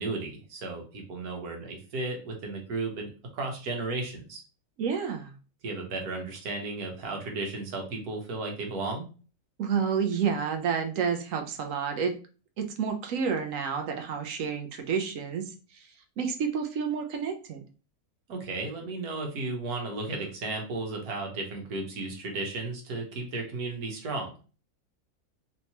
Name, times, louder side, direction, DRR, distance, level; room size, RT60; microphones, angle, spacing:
voice 1, 0.0-4.4 5.6-9.0 18.3-24.3, right 3 dB, 85° right, 1 dB, 1.5 m, -34 dB
voice 2, 4.8-5.3 9.6-12.2 12.6-15.9 16.2-17.6, right 6 dB, 70° right, 5 dB, 0.9 m, -30 dB
3.2 x 2.9 x 2.8 m, 0.35 s
omnidirectional pair, 1.6 m